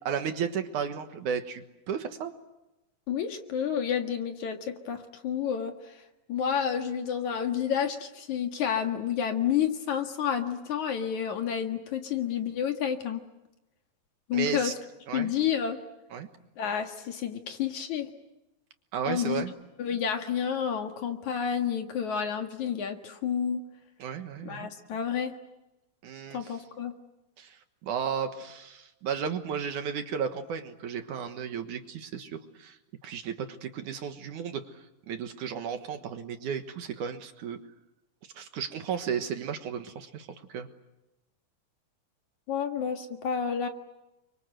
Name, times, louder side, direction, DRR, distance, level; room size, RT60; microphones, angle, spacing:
voice 1, 0.0-2.3 14.3-14.7 15.1-15.3 16.1-16.3 18.9-19.5 24.0-24.7 26.0-26.4 27.4-32.8 33.0-37.6 38.4-40.7, right 7 dB, 65° right, 7 dB, 2.6 m, -34 dB
voice 2, 3.1-6.0 6.3-13.2 14.3-14.7 15.1-15.8 16.6-18.1 19.1-19.4 19.8-23.6 24.4-25.4 26.3-26.9 42.5-43.7, left 8 dB, 60° left, 5 dB, 2.9 m, -30 dB
29.5 x 24.5 x 7.8 m, 0.97 s
omnidirectional pair, 4.1 m